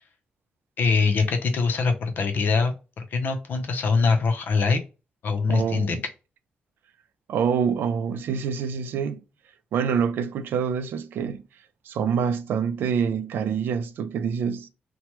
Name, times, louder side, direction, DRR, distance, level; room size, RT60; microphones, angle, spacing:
voice 1, 0.8-4.8 5.2-6.0, left 4 dB, 65° left, 0.6 m, -23 dB
voice 2, 5.5-6.0 7.3-9.2 9.7-11.5 11.9-14.7, right 7 dB, 85° right, 0.4 m, -26 dB
2.9 x 2.2 x 3.0 m
cardioid pair, 130°, 3 cm